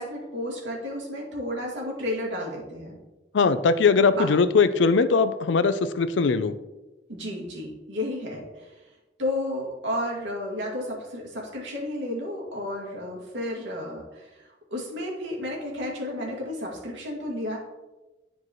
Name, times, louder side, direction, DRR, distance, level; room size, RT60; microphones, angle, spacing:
voice 1, 0.0-3.0 4.0-4.3 7.1-8.7 9.2-17.6, left 1 dB, 80° right, -2 dB, 2.2 m, -32 dB
voice 2, 3.3-6.5, left 4 dB, 80° left, 12 dB, 0.4 m, -20 dB
11.0 x 4.6 x 3.1 m, 1.1 s
head